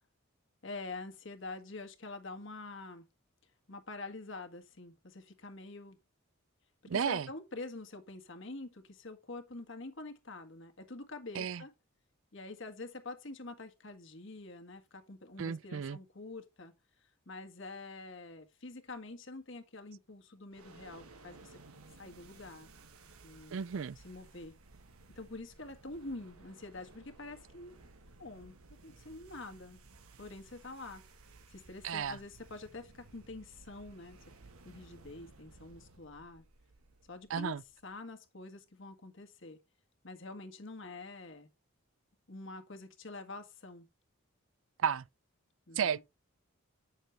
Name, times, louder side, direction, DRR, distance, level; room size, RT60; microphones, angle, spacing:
voice 1, 0.6-3.1 3.7-6.0 6.9-11.7 12.3-16.7 17.3-21.6 22.0-22.7 23.2-23.6 24.0-24.5 25.2-27.7 28.2-28.6 28.8-29.8 30.2-31.1 31.5-34.2 34.6-36.4 37.1-37.5 37.8-39.6 40.0-41.5 42.3-43.9 45.7-46.0, left 2 dB, 55° left, 1.7 m, -46 dB
voice 2, 6.9-7.3 11.3-11.6 15.4-16.0 23.5-24.0 31.8-32.2 37.3-37.6 44.8-45.0 45.8-46.0, right 7 dB, 65° right, 0.4 m, -33 dB
sound 1, 20.5-37.9, right 3 dB, 80° right, 1.4 m, -58 dB
9.2 x 6.6 x 3.3 m
head